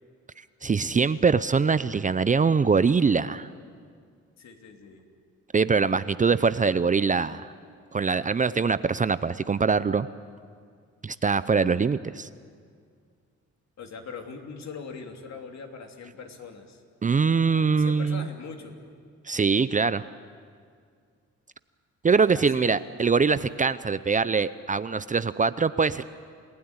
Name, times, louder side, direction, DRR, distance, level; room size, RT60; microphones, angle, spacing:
voice 1, 0.6-3.5 5.5-7.5 7.9-10.1 11.0-12.3 17.0-18.3 19.2-20.0 22.0-26.0, right 5 dB, 25° right, 15 dB, 0.6 m, -23 dB
voice 2, 4.4-5.0 13.8-16.8 17.8-18.8 22.3-22.8, left 5 dB, 60° left, 4 dB, 3.1 m, -41 dB
28.5 x 16.5 x 9.7 m, 2.1 s
cardioid pair, 90°, 30 cm